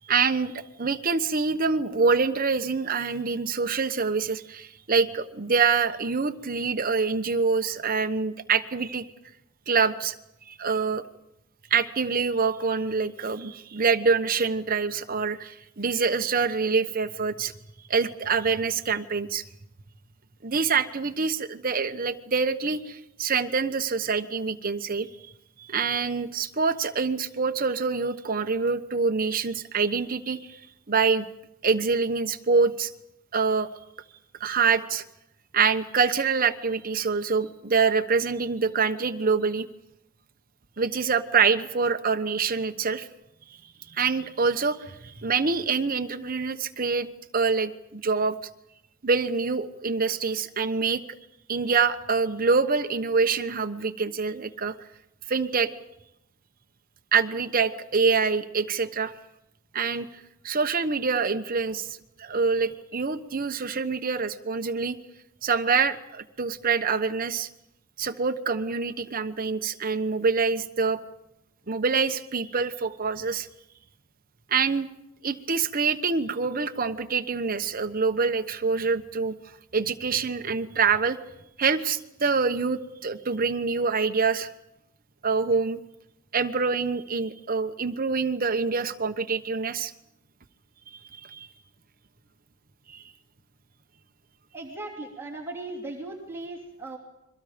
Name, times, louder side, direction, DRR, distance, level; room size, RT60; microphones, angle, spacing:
voice 1, 0.0-9.1 9.7-10.1 10.5-11.0 11.7-17.5 17.9-19.4 20.4-25.1 25.6-30.6 30.9-31.3 31.6-32.9 33.3-33.7 34.4-35.0 35.5-39.7 40.8-43.1 43.9-47.1 47.3-48.3 49.0-51.0 51.5-54.8 55.3-55.7 57.1-59.1 59.7-60.1 60.4-65.0 65.4-67.5 68.0-71.0 71.7-73.5 74.5-74.9 75.2-79.3 79.7-81.2 81.6-84.5 85.2-85.8 86.3-89.9 91.2-91.5 92.9-93.0, right 5 dB, 40° right, 8 dB, 1.0 m, -25 dB
voice 2, 94.5-97.0, right 2 dB, 10° right, -4 dB, 3.1 m, -37 dB
29.5 x 23.0 x 5.1 m, 0.86 s
head